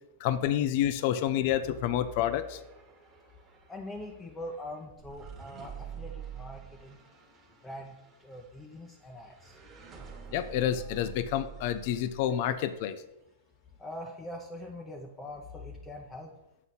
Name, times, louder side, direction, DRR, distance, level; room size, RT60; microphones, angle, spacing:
voice 1, 0.2-2.6 10.3-13.0, left 11 dB, 55° left, 12 dB, 0.4 m, -28 dB
sound 1, 1.5-12.8, right 6 dB, 25° right, 1.3 m, -48 dB
voice 2, 3.7-7.0 7.6-9.6 13.8-16.3, left 1 dB, 15° left, 1 dB, 0.7 m, -43 dB
7.5 x 4.0 x 4.0 m, 0.89 s
hypercardioid pair, 110°, 0 cm